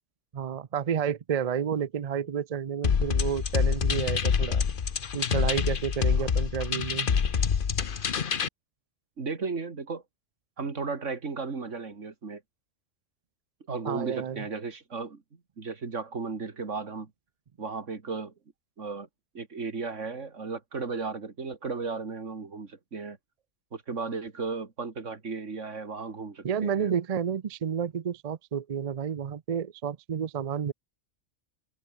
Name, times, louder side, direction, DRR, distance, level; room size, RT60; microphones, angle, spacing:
voice 1, 0.3-4.6 5.1-7.1 13.9-14.4 26.4-30.7, right 7 dB, 45° right, 0.5 m, -30 dB
sound 1, 2.8-8.5, left 6 dB, 45° left, 1.1 m, -26 dB
voice 2, 9.2-10.0 10.6-12.4 13.7-15.2 15.6-17.1 17.6-18.3 18.8-19.1 19.3-23.2 23.7-26.9, right 4 dB, 75° right, 2.6 m, -35 dB
omnidirectional pair, 1.3 m